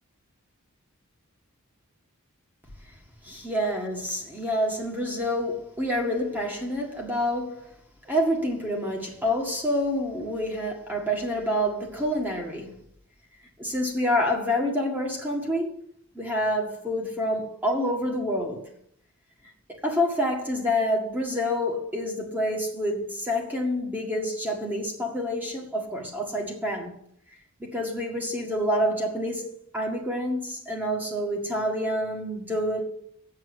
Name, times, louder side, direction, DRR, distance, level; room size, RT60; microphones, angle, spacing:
voice 1, 3.2-7.7 8.1-12.8 13.6-15.9 16.1-18.7 19.7-27.0 27.6-32.8, equal, 10° right, 1.8 m, -27 dB
7.5 x 7.5 x 8.3 m
head